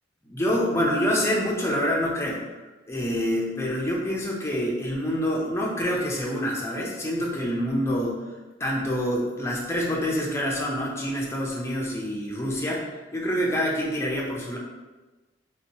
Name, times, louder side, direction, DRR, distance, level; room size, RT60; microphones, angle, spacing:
voice 1, 0.2-8.3 8.6-14.6, equal, 15° left, -3 dB, 0.6 m, -27 dB
3.5 x 2.8 x 2.8 m, 1.2 s
head